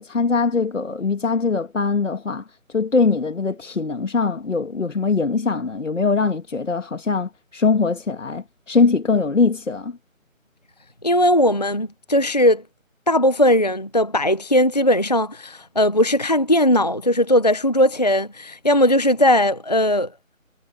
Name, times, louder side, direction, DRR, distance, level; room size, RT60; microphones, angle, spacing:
voice 1, 0.0-2.4 2.7-10.0, left 4 dB, 60° left, 2.3 m, -22 dB
voice 2, 11.0-12.6 13.1-20.1, left 1 dB, 30° left, 0.7 m, -18 dB
figure-of-eight pair, 175°, 41 cm